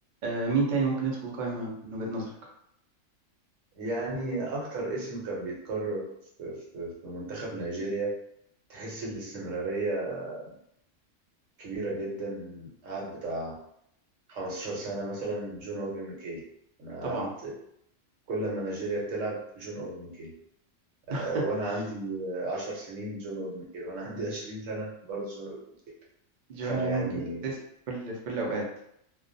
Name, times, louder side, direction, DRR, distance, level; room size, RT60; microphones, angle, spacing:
voice 1, 0.2-2.3 17.0-17.3 21.1-21.4 26.5-27.6 27.9-28.7, right 3 dB, 55° right, -2 dB, 0.5 m, -30 dB
voice 2, 3.7-6.1 6.4-8.1 8.7-10.5 11.6-13.6 14.3-16.4 16.8-17.6 18.3-20.3 21.1-25.6 26.6-27.5, right 2 dB, 75° right, -3 dB, 1.1 m, -34 dB
2.3 x 2.2 x 2.5 m, 0.74 s
omnidirectional pair, 1.4 m